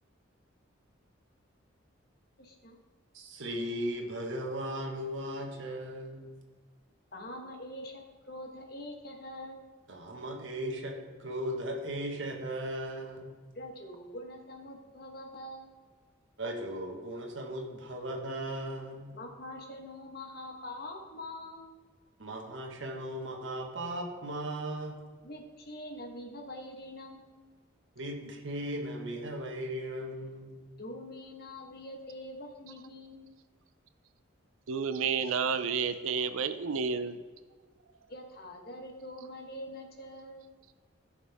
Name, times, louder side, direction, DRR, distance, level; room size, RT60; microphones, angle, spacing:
voice 1, 2.4-2.8 7.1-9.6 13.5-15.7 19.1-21.7 25.2-27.4 30.8-33.3 38.1-40.5, left 1 dB, 50° left, 2 dB, 1.3 m, -44 dB
voice 2, 3.1-6.3 9.9-13.4 16.4-19.2 22.2-25.0 27.9-30.6, right 1 dB, 65° right, 2 dB, 1.4 m, -37 dB
voice 3, 34.7-37.2, right 5 dB, 90° right, 12 dB, 0.5 m, -30 dB
14.5 x 6.5 x 3.5 m, 1.4 s
head